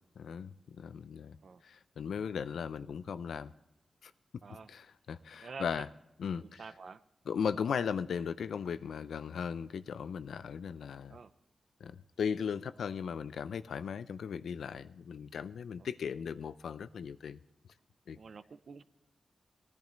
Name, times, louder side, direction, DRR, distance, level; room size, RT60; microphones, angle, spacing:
voice 1, 0.2-1.4 1.6-3.5 4.0-4.1 4.7-5.9 6.2-6.6 7.3-11.2 11.8-17.4 18.1-18.2, left 7 dB, 85° left, 14 dB, 0.5 m, -37 dB
voice 2, 5.4-5.8 6.3-7.0 11.1-11.3 15.8-15.9 18.1-18.8, right 5 dB, 70° right, 13 dB, 0.6 m, -48 dB
18.0 x 10.5 x 3.1 m, 0.88 s
cardioid pair, 60°, 0 cm